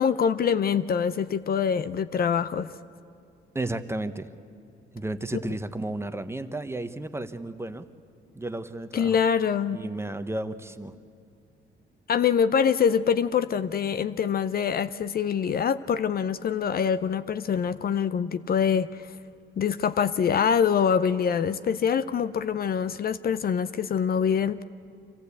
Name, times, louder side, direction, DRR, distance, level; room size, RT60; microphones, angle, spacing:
voice 1, 0.0-2.7 8.9-9.8 12.1-19.1 19.6-24.6, left 7 dB, 50° left, 13 dB, 0.6 m, -24 dB
voice 2, 3.5-4.3 4.9-7.8 8.3-9.2 9.7-10.9, right 2 dB, 15° right, 10 dB, 1.0 m, -33 dB
25.5 x 15.0 x 8.3 m, 2.4 s
cardioid pair, 90°, 20 cm